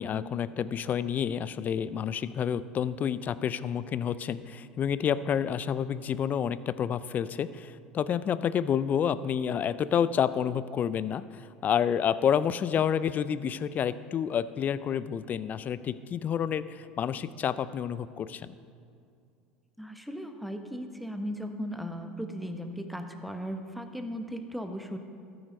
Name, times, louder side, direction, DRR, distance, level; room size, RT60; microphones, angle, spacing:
voice 1, 0.0-18.5, left 8 dB, 40° left, 16 dB, 0.5 m, -29 dB
voice 2, 19.8-25.0, equal, ahead, 6 dB, 1.1 m, -37 dB
14.0 x 7.9 x 5.2 m, 2.4 s
hypercardioid pair, 80°, 4 cm